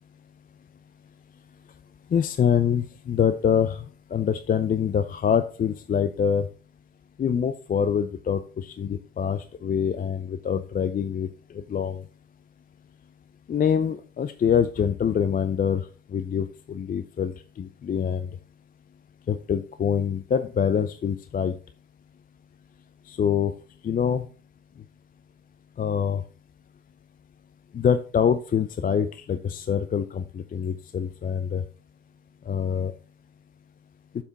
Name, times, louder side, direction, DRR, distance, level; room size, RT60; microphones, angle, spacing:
voice 1, 2.1-3.8 4.1-6.5 7.2-11.3 11.7-12.0 13.5-15.8 16.1-17.3 17.6-18.3 19.3-21.5 23.1-23.5 23.8-24.2 25.8-26.2 27.7-31.6 32.5-32.9, left 7 dB, 20° left, 11 dB, 0.5 m, -25 dB
8.0 x 5.8 x 4.0 m, 0.39 s
figure-of-eight pair, 60°, 40 cm